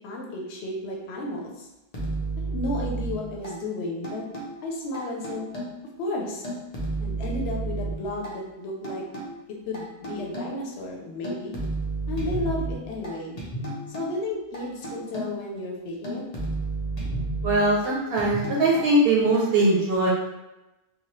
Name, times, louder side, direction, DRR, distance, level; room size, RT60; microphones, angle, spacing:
voice 1, 0.0-1.7 2.4-4.2 4.6-5.5 6.0-6.5 7.0-9.0 9.7-11.5 12.1-13.4 13.9-16.2, left 2 dB, 90° left, -1 dB, 0.8 m, -33 dB
sound 1, 1.9-3.5 4.0-4.5 4.9-5.9 6.4-8.3 8.8-9.3 9.7-10.6 11.2-13.1 13.4-14.1 14.5-15.5 16.0-17.9 18.2-18.9 19.3-19.4, right 2 dB, 45° left, 0.7 m, -32 dB
voice 2, 17.4-20.1, right 2 dB, 70° right, -4 dB, 0.8 m, -21 dB
3.0 x 2.1 x 2.9 m, 1.0 s
omnidirectional pair, 1.0 m